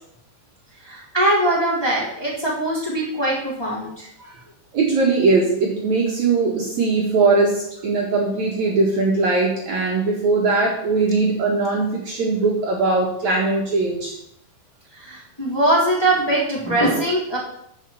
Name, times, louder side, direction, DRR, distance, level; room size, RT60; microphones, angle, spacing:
voice 1, 0.8-4.4 14.9-17.4, right 1 dB, 5° left, -6 dB, 3.4 m, -21 dB
voice 2, 4.7-14.1, right 3 dB, 55° right, -3 dB, 2.9 m, -20 dB
10.5 x 6.9 x 7.3 m, 0.75 s
omnidirectional pair, 4.4 m